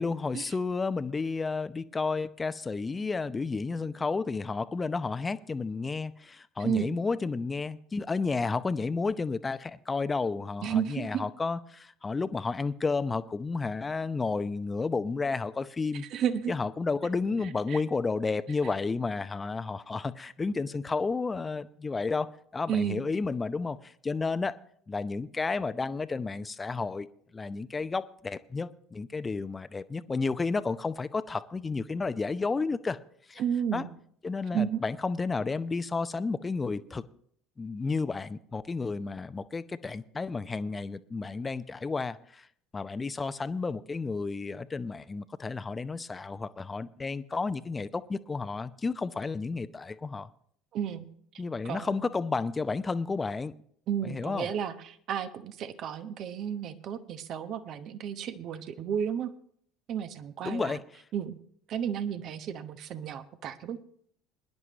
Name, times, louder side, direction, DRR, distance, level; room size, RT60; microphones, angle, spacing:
voice 1, 0.0-16.1 16.5-24.6 24.9-27.1 27.3-33.0 33.3-33.4 33.7-33.9 34.2-37.0 37.6-42.5 42.7-50.3 51.4-53.5 54.0-54.5 60.4-61.0, left 4 dB, 20° left, 0.7 m, -32 dB
voice 2, 6.6-6.9 10.6-11.3 16.1-16.5 17.7-17.8 22.7-23.0 33.4-33.9 34.5-34.8 50.7-51.0 51.6-52.1 53.9-59.3 59.9-60.8 61.1-61.3 61.7-63.8, right 8 dB, 50° right, 1.1 m, -32 dB
22.5 x 10.5 x 3.1 m
hypercardioid pair, 65°, 0 cm